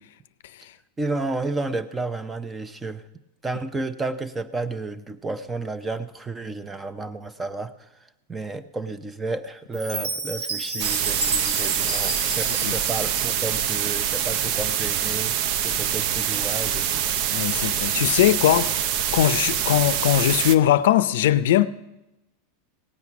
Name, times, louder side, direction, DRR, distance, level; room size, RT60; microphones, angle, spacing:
voice 1, 1.0-3.0 3.4-17.0, right 3 dB, 15° right, 0.7 m, -32 dB
Chime, 9.7-14.0, right 3 dB, 75° right, 3.2 m, -31 dB
sound 1, 10.8-20.6, right 9 dB, 55° right, 0.6 m, -25 dB
voice 2, 17.3-18.8 19.1-21.7, left 12 dB, 80° left, 0.5 m, -20 dB
17.5 x 8.3 x 6.1 m
supercardioid pair, 135°, 0 cm